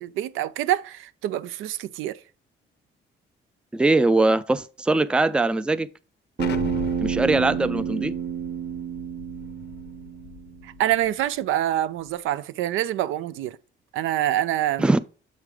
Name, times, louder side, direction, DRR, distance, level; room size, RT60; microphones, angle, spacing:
voice 1, 0.0-2.2 10.6-13.6 13.9-14.9, right 13 dB, 85° right, 0.4 m, -26 dB
voice 2, 3.7-5.9 7.0-8.1 14.8-15.0, right 2 dB, 5° right, 0.3 m, -21 dB
Explosion, 6.4-11.1, left 10 dB, 60° left, 0.6 m, -39 dB
Bass guitar, 6.4-10.7, right 8 dB, 60° right, 1.1 m, -29 dB
7.5 x 3.3 x 4.8 m
cardioid pair, 90°, 20 cm